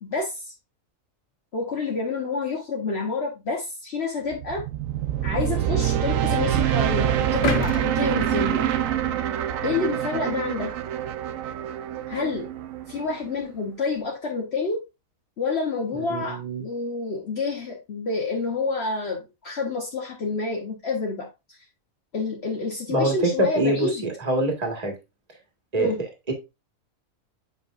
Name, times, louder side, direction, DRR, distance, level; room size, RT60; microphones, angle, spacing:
voice 1, 0.0-0.5 1.5-4.7 5.2-8.7 9.6-10.8 12.1-12.5 12.9-14.8 15.4-21.6 22.1-24.0 25.8-26.0, left 4 dB, 55° left, 1.3 m, -28 dB
sound 1, 4.3-13.4, right 11 dB, 80° right, 1.0 m, -26 dB
sound 2, 7.4-9.6 10.1-10.2, left 5 dB, 85° left, 1.2 m, -31 dB
voice 2, 15.9-16.6 22.9-25.0 25.7-25.9 26.3-26.4, right 2 dB, 30° right, 1.7 m, -25 dB
7.6 x 5.0 x 2.4 m
omnidirectional pair, 1.4 m